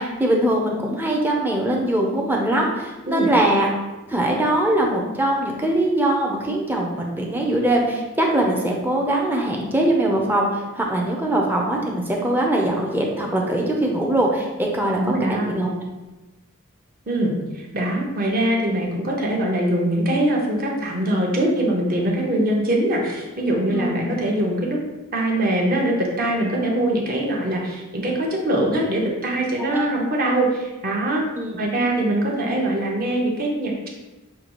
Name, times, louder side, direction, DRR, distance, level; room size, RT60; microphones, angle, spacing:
voice 1, 0.0-3.7 4.1-15.0 15.3-15.7 23.7-24.1 29.6-29.9 31.4-31.6, right 1 dB, 10° right, -1 dB, 0.5 m, -22 dB
voice 2, 15.0-15.5 17.1-24.8 25.1-31.2 31.6-33.9, right 1 dB, 40° right, -1 dB, 0.8 m, -22 dB
6.5 x 2.3 x 3.0 m, 1.1 s
head